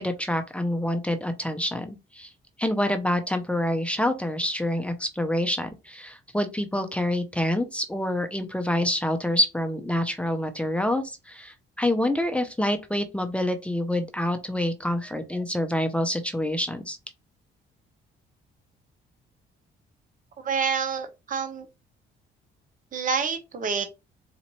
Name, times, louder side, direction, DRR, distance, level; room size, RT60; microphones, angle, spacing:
voice 1, 0.0-2.3 2.6-17.0, left 1 dB, 5° left, 0.7 m, -27 dB
voice 2, 20.4-21.6 22.9-23.8, right 6 dB, 40° right, 0.8 m, -27 dB
4.2 x 2.5 x 3.0 m
cardioid pair, 90°, 20 cm